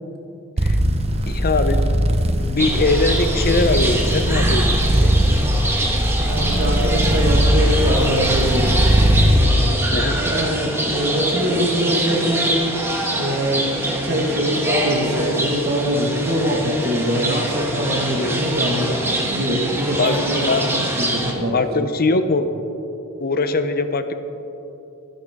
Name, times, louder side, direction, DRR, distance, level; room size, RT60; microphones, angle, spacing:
sound 1, 0.6-9.5, equal, 30° right, 0.9 m, -19 dB
voice 1, 1.3-1.8 2.4-5.1 9.9-10.2 18.2-18.4 20.0-20.1 20.5-20.8 21.5-22.5 23.2-24.1, left 3 dB, 45° left, 9 dB, 0.8 m, -21 dB
sound 2, 2.6-21.3, right 1 dB, 10° right, 1.6 m, -25 dB
voice 2, 6.1-8.7 9.2-12.5 13.1-21.9, equal, 45° right, 0 dB, 1.7 m, -23 dB
25.0 x 10.0 x 3.7 m, 3.0 s
head